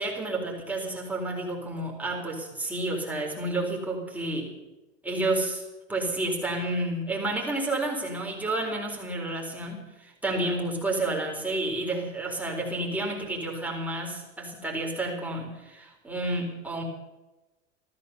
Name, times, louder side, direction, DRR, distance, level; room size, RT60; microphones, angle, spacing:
voice 1, 0.0-4.5 5.0-5.6 5.9-16.8, right 2 dB, 5° right, -2 dB, 4.1 m, -30 dB
15.0 x 13.5 x 7.0 m, 1.1 s
supercardioid pair, 125°, 37 cm